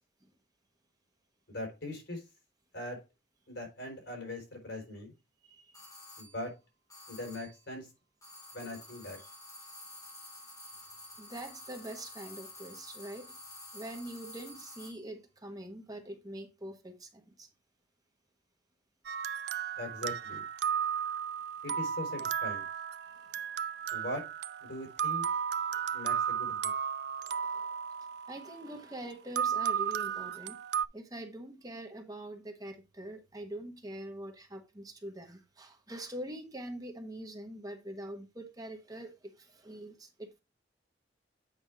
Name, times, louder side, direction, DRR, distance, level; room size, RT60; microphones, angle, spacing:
voice 1, 1.5-2.2 2.7-3.0 3.5-5.1 6.2-6.5 7.1-7.9 8.5-9.2 19.8-20.4 21.6-22.6 23.9-24.2 24.6-25.2 25.9-26.7, left 1 dB, 70° left, 4.3 m, -40 dB
voice 2, 5.4-5.9 9.2-9.3 11.2-13.3 13.7-17.5 20.8-20.9 23.0-23.3 25.7-25.9 27.3-27.7 28.3-30.6 30.9-40.4, right 1 dB, 20° right, 1.1 m, -44 dB
sound 1, 5.7-6.4 6.9-7.6 8.2-15.1, left 1 dB, 20° left, 3.4 m, -50 dB
sound 2, 19.1-28.8 29.4-30.9, right 8 dB, 60° right, 0.4 m, -34 dB
8.4 x 5.4 x 3.5 m
head